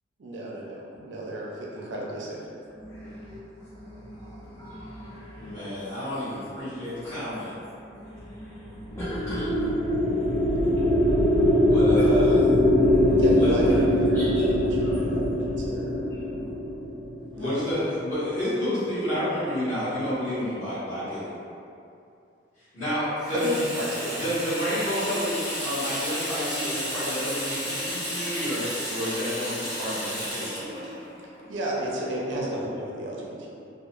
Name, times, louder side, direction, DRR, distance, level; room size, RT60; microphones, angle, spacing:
voice 1, 0.2-2.4 11.2-11.5 13.2-15.9 17.4-17.6 23.3-24.2 31.5-33.5, right 1 dB, 85° right, -4 dB, 0.5 m, -33 dB
voice 2, 2.8-5.7 6.7-7.1 7.8-12.0 12.7-13.2 14.1-14.5 14.8-14.9 15.2-15.3 15.7-15.8 16.1-16.5, equal, 15° left, -12 dB, 0.3 m, -40 dB
voice 3, 5.4-7.5 11.5-12.4 13.3-13.9 17.3-21.3 22.7-23.5 24.2-30.6, equal, 45° left, -15 dB, 1.4 m, -30 dB
sound 1, 8.9-17.4, left 1 dB, 75° left, 0.5 m, -22 dB
Water tap faucet / Sink (filling or washing), 23.2-32.5, equal, 60° left, 1.1 m, -33 dB
2.8 x 2.1 x 2.4 m, 2.5 s
head